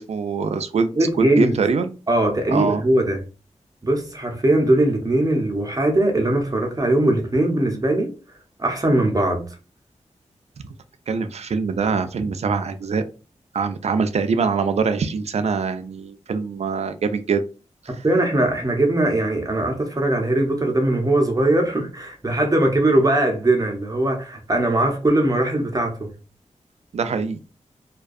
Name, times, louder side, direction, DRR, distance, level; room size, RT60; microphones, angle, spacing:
voice 1, 0.0-1.9 2.5-2.8 11.1-13.0 13.5-17.4 17.9-18.0 26.9-27.4, right 5 dB, 60° right, 0.4 m, -23 dB
voice 2, 1.0-1.6 2.1-3.2 3.8-8.1 8.6-9.4 18.0-26.1, right 1 dB, 30° right, 0.7 m, -20 dB
2.3 x 2.2 x 2.5 m
cardioid pair, 55°, 12 cm